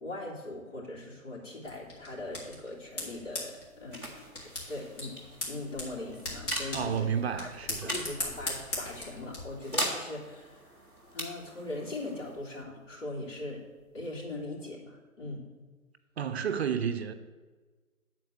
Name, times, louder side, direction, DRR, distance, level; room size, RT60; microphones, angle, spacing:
voice 1, 0.0-4.1 4.7-5.2 5.5-7.5 7.8-10.6 11.1-13.6 13.9-15.4, left 2 dB, 60° left, 3.2 m, -40 dB
sound 1, 1.6-9.4, left 1 dB, 30° left, 2.3 m, -40 dB
sound 2, 3.1-14.5, right 1 dB, 5° left, 0.6 m, -41 dB
voice 2, 6.7-8.0 16.2-17.1, right 7 dB, 50° right, 0.6 m, -31 dB
8.9 x 4.4 x 7.2 m
hypercardioid pair, 145°, 42 cm